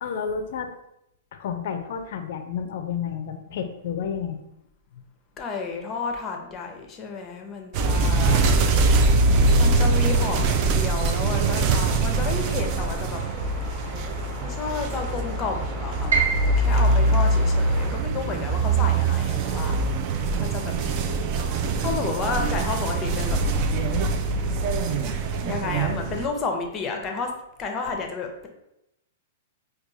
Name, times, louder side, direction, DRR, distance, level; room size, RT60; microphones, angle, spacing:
voice 1, 0.0-0.7 1.3-4.4, left 7 dB, 65° left, 7 dB, 0.4 m, -31 dB
voice 2, 5.4-8.4 9.6-13.2 14.4-16.1 16.4-19.8 20.4-20.7 21.8-23.4 25.4-27.3 27.6-28.5, left 4 dB, 25° left, 3 dB, 0.6 m, -31 dB
sound 1, 7.7-26.3, right 3 dB, 40° right, 0.4 m, -23 dB
sound 2, 12.1-17.9, right 1 dB, 20° right, 1.2 m, -40 dB
Piano, 16.1-22.0 22.4-23.5 23.9-24.0 24.7-25.1, right 5 dB, 85° right, 1.0 m, -32 dB
4.5 x 2.3 x 2.6 m, 0.85 s
hypercardioid pair, 125°, 0 cm